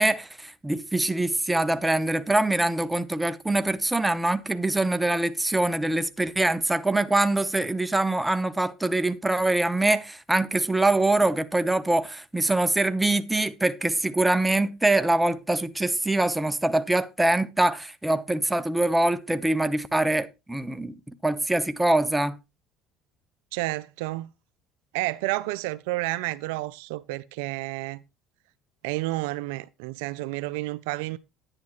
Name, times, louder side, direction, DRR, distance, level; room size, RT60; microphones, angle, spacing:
voice 1, 0.0-20.9 21.2-22.4, right 2 dB, 10° right, 1.0 m, -24 dB
voice 2, 23.5-24.3 24.9-28.0 28.8-31.2, right 19 dB, 85° right, 0.4 m, -30 dB
10.5 x 9.8 x 3.1 m
supercardioid pair, 85°, 0 cm